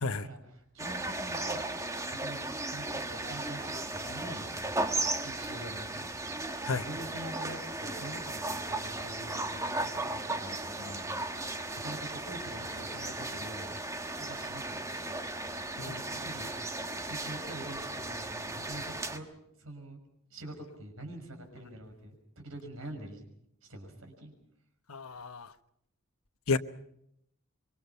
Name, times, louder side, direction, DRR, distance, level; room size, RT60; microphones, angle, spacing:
voice 1, 0.2-1.7 2.1-2.4 2.7-4.9 5.2-6.1 6.7-13.8 14.1-14.6 14.9-15.2 15.8-16.8 17.1-19.3 19.6-20.0 20.3-23.2 23.6-24.3, right 1 dB, 65° right, 6.1 m, -45 dB
sound 1, 0.8-19.2, right 2 dB, 15° right, 1.3 m, -36 dB
voice 2, 24.9-25.5 26.5-26.6, left 3 dB, 75° left, 1.2 m, -31 dB
26.0 x 24.0 x 5.7 m
head